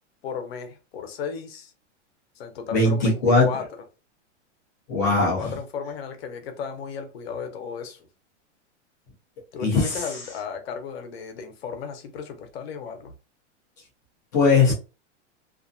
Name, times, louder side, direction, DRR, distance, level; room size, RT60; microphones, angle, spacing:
voice 1, 0.2-1.7 2.4-3.7 5.0-8.0 9.5-13.1, left 6 dB, 55° left, 7 dB, 0.7 m, -35 dB
voice 2, 2.7-3.5 4.9-5.5 9.6-10.0 14.3-14.7, left 3 dB, 15° left, -3 dB, 0.3 m, -19 dB
2.5 x 2.2 x 2.5 m, 0.31 s
supercardioid pair, 165°, 37 cm